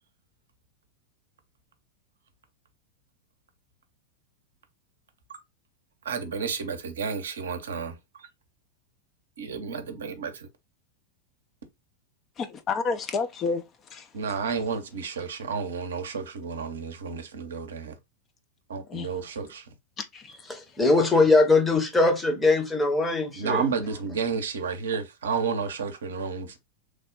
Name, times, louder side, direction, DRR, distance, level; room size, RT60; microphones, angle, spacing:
voice 1, 6.0-8.3 9.4-10.5 14.1-18.0 18.7-19.7 23.3-26.6, right 5 dB, 65° right, 0.6 m, -31 dB
voice 2, 12.4-14.1 18.9-19.1 20.0-20.8, left 4 dB, 25° left, 0.4 m, -31 dB
voice 3, 20.5-23.7, left 3 dB, 10° left, 0.8 m, -21 dB
3.2 x 2.0 x 3.7 m
figure-of-eight pair, 90°, 0 cm